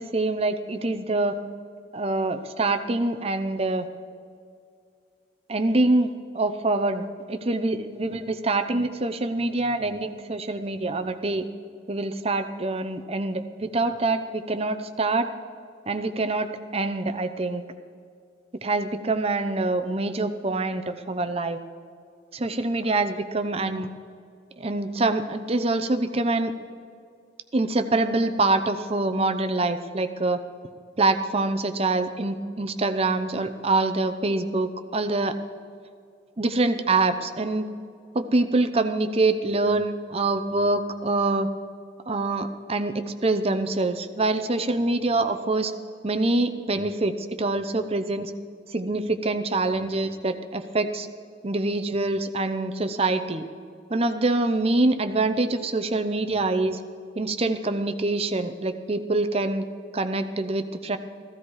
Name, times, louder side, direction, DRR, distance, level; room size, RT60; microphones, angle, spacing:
voice 1, 0.0-1.4 1.9-3.9 5.5-11.5 11.9-15.3 15.9-17.6 18.6-21.6 22.3-23.9 24.6-26.5 27.5-30.4 31.0-35.3 36.4-37.7 38.1-41.5 42.1-45.7 46.0-48.3 48.7-51.1 51.4-53.5 53.9-56.8 57.2-59.6 59.9-61.0, right 2 dB, 35° right, 9 dB, 0.7 m, -25 dB
15.0 x 13.5 x 4.8 m, 2.2 s
head